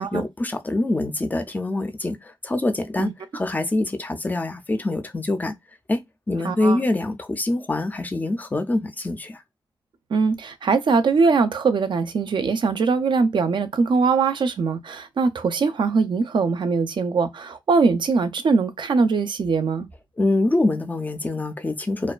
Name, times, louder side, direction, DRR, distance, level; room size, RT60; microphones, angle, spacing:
voice 1, 0.0-5.6 5.9-6.0 6.3-9.4 20.2-22.1, left 2 dB, 20° left, 0.3 m, -25 dB
voice 2, 6.4-6.8 10.1-19.9, right 4 dB, 60° right, 0.4 m, -21 dB
2.4 x 2.2 x 2.3 m
wide cardioid pair, 115°, 9 cm